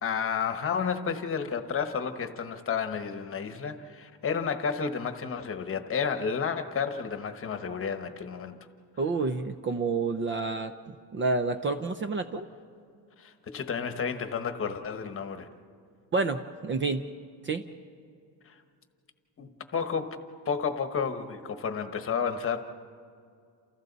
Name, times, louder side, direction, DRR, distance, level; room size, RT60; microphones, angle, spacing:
voice 1, 0.0-8.6 13.2-15.5 18.4-18.6 19.4-20.2 20.4-22.6, left 6 dB, 30° left, 8 dB, 1.1 m, -31 dB
voice 2, 9.0-12.5 16.1-17.1 17.4-17.6, right 3 dB, 30° right, 9 dB, 0.5 m, -29 dB
29.0 x 28.5 x 4.0 m, 2.3 s
cardioid pair, 180°, 42 cm